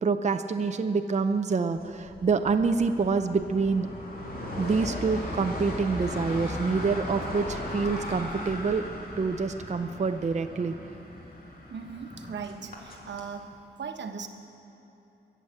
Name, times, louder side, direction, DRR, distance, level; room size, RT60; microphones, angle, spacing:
voice 1, 0.0-3.9 4.6-8.8 9.2-10.7, right 4 dB, 40° right, 7 dB, 0.6 m, -26 dB
sound 1, 1.8-13.3, left 1 dB, 55° left, 2.9 m, -38 dB
voice 2, 11.7-13.5 13.8-14.3, right 6 dB, 85° right, 6 dB, 1.0 m, -38 dB
23.0 x 8.0 x 7.5 m, 3.0 s
wide cardioid pair, 115°, 18 cm